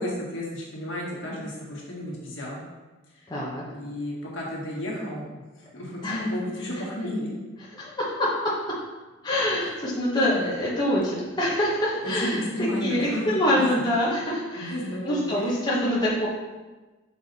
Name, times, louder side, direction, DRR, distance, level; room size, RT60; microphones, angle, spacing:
voice 1, 0.0-2.6 3.1-3.3 3.7-5.2 5.6-7.3 10.1-10.5 12.0-13.9 14.6-15.4, left 1 dB, 65° left, -4 dB, 1.7 m, -32 dB
voice 2, 3.3-3.6 6.0-6.2 7.8-8.3 9.2-12.4 12.8-14.7 15.0-16.3, left 1 dB, 20° left, -6 dB, 1.0 m, -25 dB
5.6 x 4.6 x 4.1 m, 1.2 s
head